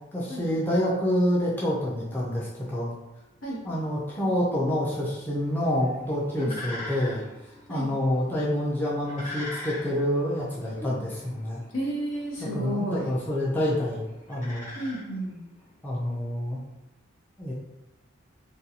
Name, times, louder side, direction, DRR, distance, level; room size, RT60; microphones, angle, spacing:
voice 1, 0.1-2.9 3.6-7.2 7.7-11.6 12.5-14.7 15.8-16.6 17.4-17.5, left 1 dB, 10° left, -6 dB, 0.4 m, -27 dB
sound 1, 5.3-15.7, left 2 dB, 40° left, 1.1 m, -43 dB
voice 2, 11.7-13.1 14.7-15.4, right 1 dB, 85° left, -4 dB, 0.9 m, -32 dB
2.6 x 2.2 x 2.8 m, 0.99 s
head